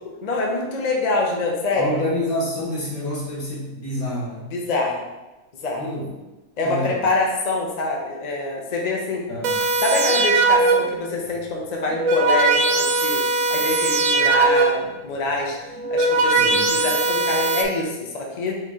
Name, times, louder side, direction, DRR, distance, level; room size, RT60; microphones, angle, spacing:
voice 1, 0.2-2.1 4.5-5.0 5.6-5.8 6.6-9.2 9.8-13.2 13.5-15.6 15.9-18.6, left 2 dB, 45° left, -1 dB, 0.5 m, -25 dB
voice 2, 1.8-4.5 5.8-6.1 6.6-7.0 9.3-9.5 16.3-16.7, left 1 dB, 65° left, -6 dB, 1.8 m, -27 dB
sound 1, 9.4-11.1 11.8-15.0 15.6-17.6, right 3 dB, 70° right, 0.9 m, -20 dB
4.8 x 3.0 x 3.5 m, 1.1 s
omnidirectional pair, 1.7 m